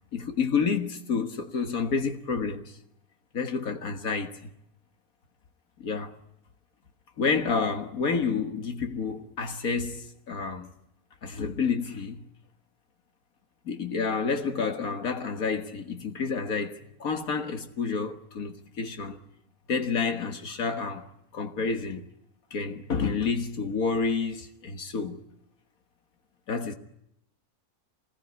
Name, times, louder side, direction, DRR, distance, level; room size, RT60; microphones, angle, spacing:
voice 1, 0.1-2.8 3.3-4.5 5.8-6.1 7.2-10.7 11.2-12.2 13.7-19.2 19.7-22.0 22.5-25.2 26.5-26.7, left 5 dB, 70° left, 2.0 m, -29 dB
25.5 x 20.0 x 9.7 m
omnidirectional pair, 1.6 m